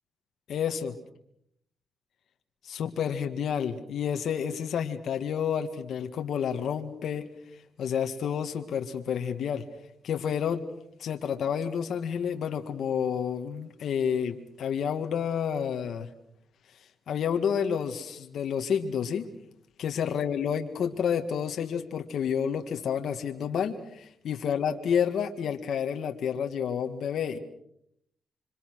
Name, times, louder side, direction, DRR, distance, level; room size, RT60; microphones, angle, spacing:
voice 1, 0.5-0.9 2.6-7.3 7.8-9.6 10.0-10.6 11.0-16.1 17.1-19.3 19.8-27.4, left 7 dB, 70° left, 5 dB, 1.8 m, -29 dB
27.0 x 25.0 x 6.3 m, 0.73 s
cardioid pair, 80°, 0 cm